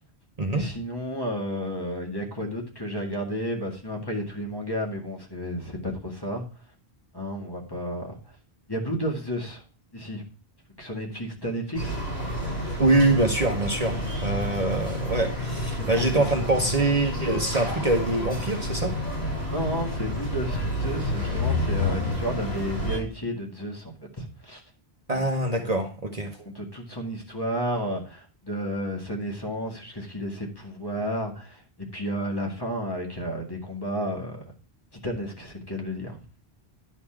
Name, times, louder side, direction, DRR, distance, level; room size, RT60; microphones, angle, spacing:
voice 1, 0.5-6.4 7.1-8.2 8.7-9.6 9.9-10.2 10.8-12.0 15.8-16.5 19.5-24.6 25.1-25.7 26.4-34.4 34.9-36.2, equal, 20° left, 0 dB, 2.0 m, -32 dB
sound 1, 11.7-23.0, left 1 dB, 75° left, 6.2 m, -29 dB
voice 2, 12.8-18.9 25.1-26.4, right 2 dB, 40° right, 3 dB, 1.1 m, -24 dB
11.0 x 4.3 x 5.7 m, 0.35 s
omnidirectional pair, 1.1 m